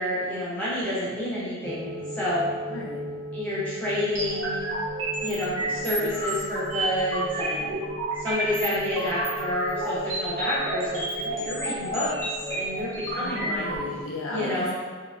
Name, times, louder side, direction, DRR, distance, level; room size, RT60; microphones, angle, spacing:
voice 1, 0.0-2.5 3.3-4.6 5.2-7.8 8.2-12.1 12.5-13.7 14.3-14.7, left 1 dB, 5° left, -10 dB, 0.9 m, -29 dB
sound 1, 1.6-14.0, right 1 dB, 20° right, 0.6 m, -38 dB
voice 2, 2.7-3.1 13.2-14.7, left 2 dB, 85° left, -2 dB, 0.7 m, -34 dB
sound 2, 4.1-13.8, right 1 dB, 85° right, 1.0 m, -31 dB
3.0 x 2.7 x 3.4 m, 1.5 s
head